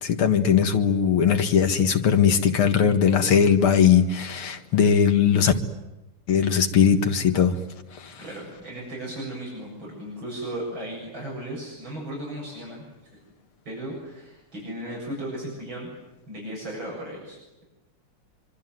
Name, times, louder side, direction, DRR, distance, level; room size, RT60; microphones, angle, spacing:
voice 1, 0.0-5.5 6.3-7.6, left 7 dB, 80° left, 7 dB, 2.6 m, -19 dB
voice 2, 8.2-12.8 13.6-15.9 16.3-17.4, right 1 dB, 60° right, -3 dB, 8.3 m, -35 dB
25.0 x 25.0 x 9.4 m, 1.0 s
omnidirectional pair, 2.4 m